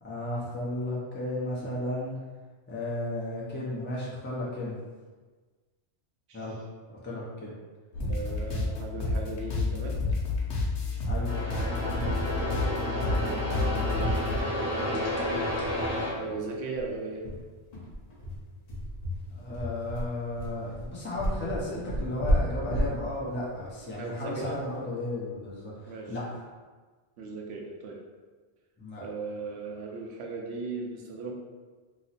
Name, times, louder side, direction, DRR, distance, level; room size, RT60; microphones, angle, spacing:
voice 1, 0.0-2.1 2.7-4.7 6.3-6.5 6.9-7.5 11.1-11.3 19.3-26.4 28.8-29.0, left 1 dB, 15° left, -6 dB, 0.5 m, -34 dB
sound 1, 7.9-14.5, left 3 dB, 90° left, 1.0 m, -30 dB
voice 2, 8.0-10.0 12.6-15.2 16.1-17.2 24.0-24.6 25.9-26.1 27.2-28.0 29.0-31.3, right 4 dB, 80° right, 0 dB, 0.8 m, -37 dB
sound 2, 11.3-16.1, equal, 15° right, 0.7 m, -31 dB
sound 3, 14.8-14.9 15.2-15.3 15.7-15.8 16.3-24.7, equal, 40° left, 0.8 m, -32 dB
2.9 x 2.0 x 4.0 m, 1.4 s
omnidirectional pair, 1.1 m